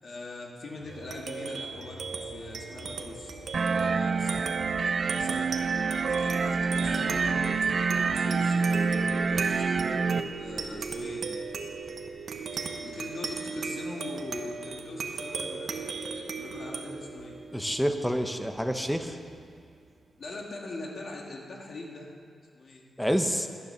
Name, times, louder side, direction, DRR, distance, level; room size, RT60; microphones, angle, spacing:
voice 1, 0.0-3.4 3.7-5.5 6.0-11.3 12.8-15.7 16.0-17.4 20.2-22.1 22.5-22.9, left 2 dB, 55° left, -1 dB, 2.0 m, -42 dB
sound 1, 0.8-14.5 14.9-15.0, left 2 dB, 70° left, 2.6 m, -50 dB
sound 2, 0.9-19.7, right 4 dB, 65° right, 1.0 m, -38 dB
sound 3, 3.5-10.2, right 4 dB, 45° right, 0.4 m, -27 dB
voice 2, 17.5-19.2 23.0-23.5, equal, ahead, 6 dB, 0.8 m, -28 dB
12.0 x 9.8 x 6.7 m, 2.2 s
wide cardioid pair, 130°, 0 cm